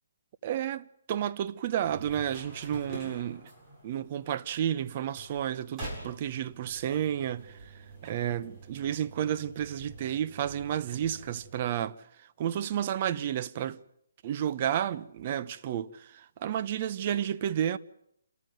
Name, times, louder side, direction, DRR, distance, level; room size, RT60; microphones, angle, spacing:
voice 1, 0.4-3.5 3.8-7.7 8.0-13.8 14.2-17.8, right 10 dB, 35° right, 1.0 m, -31 dB
sound 1, 1.8-11.7, right 2 dB, 20° right, 7.9 m, -46 dB
28.5 x 14.0 x 9.4 m
hypercardioid pair, 155°, 0 cm